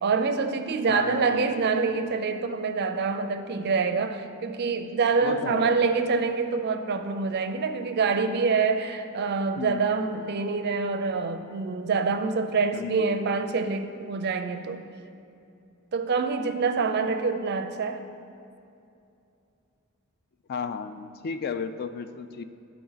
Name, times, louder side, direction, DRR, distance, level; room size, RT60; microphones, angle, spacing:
voice 1, 0.0-14.8 15.9-18.0, right 4 dB, 50° right, 8 dB, 0.4 m, -26 dB
voice 2, 0.9-1.6 5.2-5.8 9.6-10.3 12.7-13.4 20.5-22.4, left 5 dB, 45° left, 10 dB, 0.3 m, -34 dB
12.5 x 4.6 x 3.9 m, 2.6 s
head